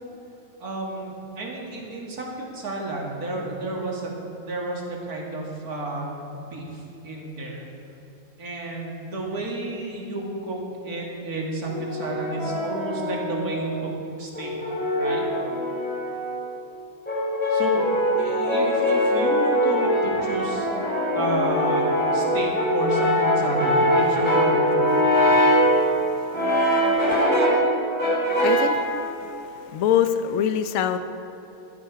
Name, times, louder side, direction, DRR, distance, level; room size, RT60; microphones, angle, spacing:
voice 1, 0.6-4.1 4.4-7.7 8.4-13.9 14.2-14.5 15.0-15.3 17.5-17.9 18.1-20.7 21.1-25.3, right 2 dB, 75° right, -2 dB, 2.5 m, -31 dB
Brass instrument, 11.7-13.6 14.3-16.4 17.1-25.7 26.3-27.7 28.0-28.8, equal, 5° left, 3.4 m, -22 dB
voice 2, 24.9-27.2 28.4-28.8 29.2-31.0, left 9 dB, 65° left, 10 dB, 1.0 m, -27 dB
14.0 x 10.5 x 4.7 m, 2.9 s
omnidirectional pair, 1.6 m